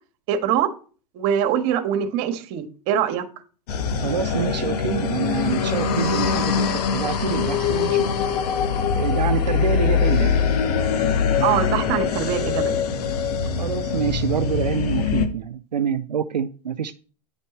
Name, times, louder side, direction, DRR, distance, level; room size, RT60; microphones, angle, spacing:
voice 1, 0.3-0.7 1.1-3.3 11.4-12.8, right 9 dB, 50° right, 1.5 m, -23 dB
sound 1, 3.7-15.3, left 6 dB, 65° left, 1.4 m, -23 dB
voice 2, 4.0-8.1 9.0-10.4 13.6-16.9, right 8 dB, 90° right, 0.5 m, -26 dB
9.8 x 5.3 x 4.3 m
hypercardioid pair, 90°, 21 cm